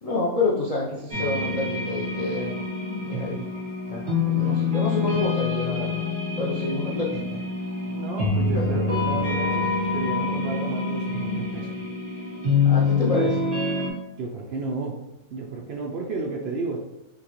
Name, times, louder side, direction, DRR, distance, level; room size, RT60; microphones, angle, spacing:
voice 1, 0.0-2.7 3.1-3.4 3.9-6.1 6.4-7.4 8.4-9.0 12.6-13.5, left 2 dB, 75° left, -5 dB, 0.3 m, -28 dB
sound 1, 1.1-13.9, left 4 dB, 40° right, 1.2 m, -26 dB
voice 2, 7.9-11.8 14.2-15.0 15.3-16.8, right 3 dB, 65° right, 0 dB, 0.6 m, -32 dB
5.7 x 2.3 x 3.0 m, 0.92 s
omnidirectional pair, 1.5 m